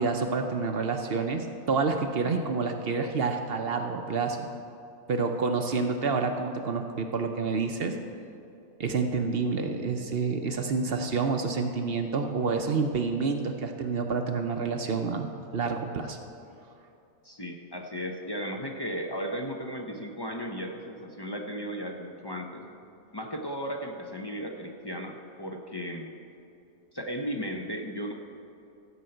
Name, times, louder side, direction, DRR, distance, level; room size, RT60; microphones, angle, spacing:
voice 1, 0.0-4.5 5.1-7.9 8.8-16.2, right 4 dB, 50° right, 5 dB, 0.8 m, -28 dB
voice 2, 17.2-22.6 23.1-26.1 26.9-28.1, equal, 25° left, 3 dB, 0.5 m, -35 dB
14.5 x 5.6 x 7.8 m, 2.6 s
omnidirectional pair, 1.5 m